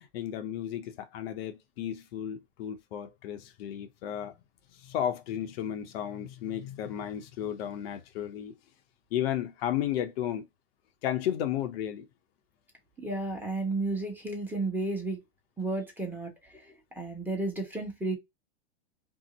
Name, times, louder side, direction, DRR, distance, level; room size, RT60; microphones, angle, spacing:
voice 1, 0.0-4.3 4.7-8.5 9.1-10.5 11.0-12.1, left 10 dB, 65° left, 0.7 m, -33 dB
voice 2, 13.0-15.2 15.6-18.2, right 2 dB, 5° right, 1.0 m, -33 dB
2.7 x 2.0 x 3.9 m
hypercardioid pair, 125°, 33 cm